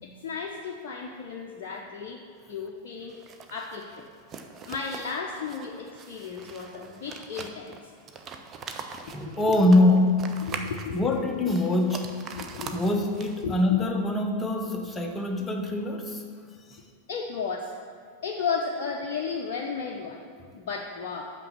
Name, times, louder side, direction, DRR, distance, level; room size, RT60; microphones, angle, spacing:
voice 1, 0.0-3.2 3.5-4.0 4.7-7.8 9.0-9.9 10.4-11.4 12.3-13.1 13.4-13.8 17.1-17.8 18.2-20.2 20.5-21.3, left 5 dB, 50° left, 0 dB, 0.6 m, -34 dB
sound 1, 3.1-13.6, right 5 dB, 25° right, 0.6 m, -42 dB
voice 2, 9.1-10.1 10.9-12.0 12.7-16.2, left 1 dB, 15° left, 2 dB, 0.9 m, -23 dB
5.9 x 5.8 x 6.8 m, 2.1 s
figure-of-eight pair, 90°, 0 cm